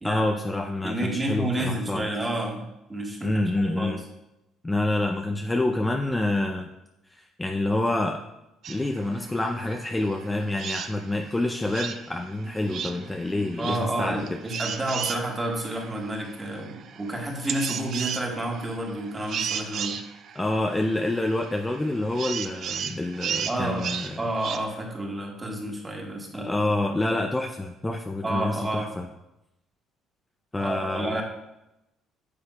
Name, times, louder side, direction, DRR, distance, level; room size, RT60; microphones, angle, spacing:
voice 1, 0.0-2.1 3.2-4.0 4.6-6.7 7.1-8.2 8.7-14.4 20.4-24.2 26.3-29.0 30.5-31.2, left 2 dB, 10° left, 4 dB, 0.4 m, -27 dB
voice 2, 0.8-3.9 13.6-20.0 23.5-23.9 24.2-26.7 28.2-28.9 30.6-31.2, right 1 dB, 20° right, 0 dB, 1.5 m, -30 dB
sound 1, 8.6-24.6, right 8 dB, 55° right, 0.4 m, -36 dB
9.5 x 6.8 x 2.3 m, 0.90 s
cardioid pair, 125°, 0 cm